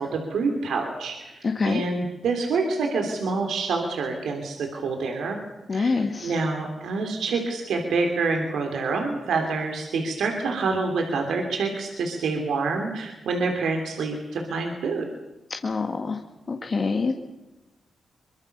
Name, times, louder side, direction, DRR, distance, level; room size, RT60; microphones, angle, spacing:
voice 1, 0.0-5.4 5.7-15.1, right 4 dB, 85° right, 3 dB, 3.1 m, -27 dB
voice 2, 1.4-1.8 5.7-6.4 15.6-16.2 16.5-17.1, left 4 dB, 45° left, 3 dB, 2.0 m, -25 dB
24.0 x 22.0 x 6.8 m, 1.0 s
cardioid pair, 60°, 0 cm